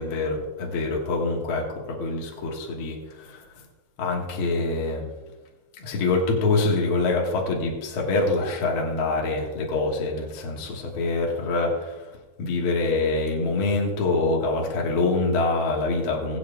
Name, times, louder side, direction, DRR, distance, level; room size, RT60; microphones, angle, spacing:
voice 1, 0.0-3.6 4.0-5.1 5.8-16.4, left 3 dB, 50° left, -2 dB, 2.1 m, -25 dB
23.0 x 7.8 x 2.3 m, 1.2 s
omnidirectional pair, 3.5 m